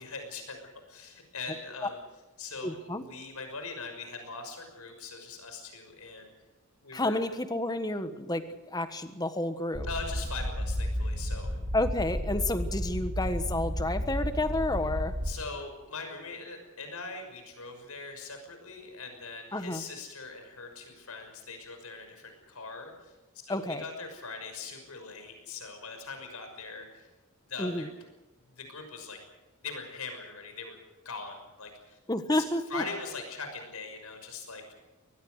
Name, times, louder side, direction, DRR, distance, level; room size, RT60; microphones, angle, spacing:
voice 1, 0.0-2.0 2.4-6.3 6.8-7.2 9.9-11.6 15.2-23.1 23.5-27.1 27.5-27.9 28.5-29.2 29.6-30.8 31.0-32.0 32.3-32.4 32.7-34.6, left 4 dB, 85° left, 5 dB, 6.1 m, -41 dB
voice 2, 2.6-3.0 6.9-9.9 11.7-15.1 19.5-19.8 23.5-23.8 27.6-27.9 32.1-32.8, left 1 dB, 15° left, 10 dB, 1.4 m, -30 dB
sound 1, 9.7-15.3, equal, 55° right, 4.4 m, -32 dB
23.5 x 19.5 x 6.5 m, 1.1 s
head